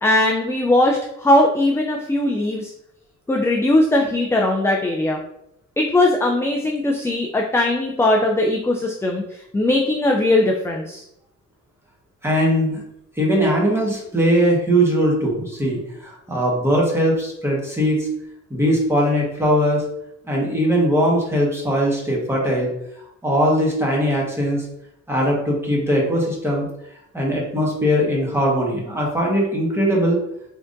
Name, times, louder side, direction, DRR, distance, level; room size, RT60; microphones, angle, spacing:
voice 1, 0.0-2.7 3.3-5.2 5.8-11.0, left 1 dB, 10° left, 0 dB, 0.4 m, -19 dB
voice 2, 12.2-12.8 13.2-18.1 18.5-19.8 20.3-22.7 23.2-24.6 25.1-26.6 27.1-30.2, equal, 10° right, -3 dB, 1.4 m, -20 dB
3.7 x 3.3 x 2.6 m, 0.78 s
cardioid pair, 90°, 30 cm